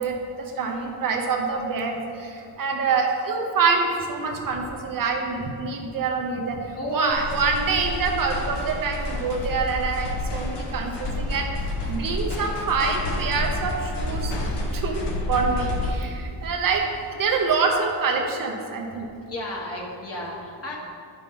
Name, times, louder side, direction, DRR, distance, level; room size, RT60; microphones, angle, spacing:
voice 1, 0.0-11.5 11.9-14.3 14.7-16.8 17.1-19.1, right 4 dB, 50° right, 2 dB, 0.8 m, -26 dB
voice 2, 0.6-0.9 2.4-2.5 2.8-2.9 6.7-7.2 16.2-17.0 19.3-20.8, equal, 35° left, -3 dB, 1.3 m, -34 dB
sound 1, 7.1-15.9, left 2 dB, 65° left, 1.4 m, -29 dB
9.7 x 6.1 x 3.6 m, 2.4 s
cardioid pair, 165°, 43 cm